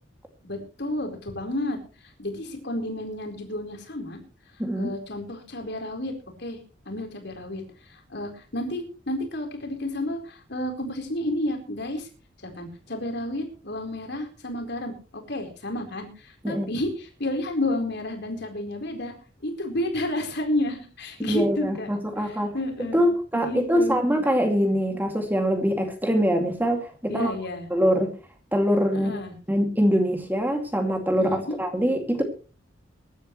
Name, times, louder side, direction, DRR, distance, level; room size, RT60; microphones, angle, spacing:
voice 1, 0.4-4.2 4.8-6.1 6.4-6.6 6.9-12.1 12.5-19.1 19.4-21.9 22.2-23.0 23.4-24.0 27.1-27.7 28.9-29.3 31.2-31.6, left 1 dB, 60° left, 4 dB, 4.3 m, -31 dB
voice 2, 4.6-4.9 16.4-16.7 21.2-27.3 27.7-28.1 28.5-29.1 29.5-32.2, equal, 10° right, 4 dB, 2.4 m, -23 dB
23.0 x 12.0 x 3.2 m, 0.35 s
head